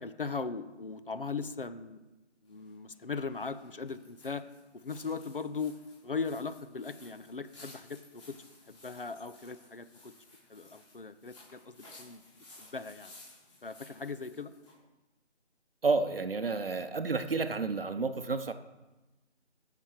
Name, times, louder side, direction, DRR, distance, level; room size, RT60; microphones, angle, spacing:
voice 1, 0.0-2.0 2.5-4.4 4.7-5.8 6.0-8.4 8.7-10.1 10.5-13.1 13.6-14.5, left 4 dB, 50° left, 12 dB, 0.7 m, -39 dB
sound 1, 2.4-14.8, left 2 dB, 25° left, 3.4 m, -57 dB
voice 2, 15.8-18.5, right 4 dB, 55° right, 10 dB, 0.8 m, -30 dB
14.0 x 6.1 x 4.5 m, 1.1 s
figure-of-eight pair, 165°, 35 cm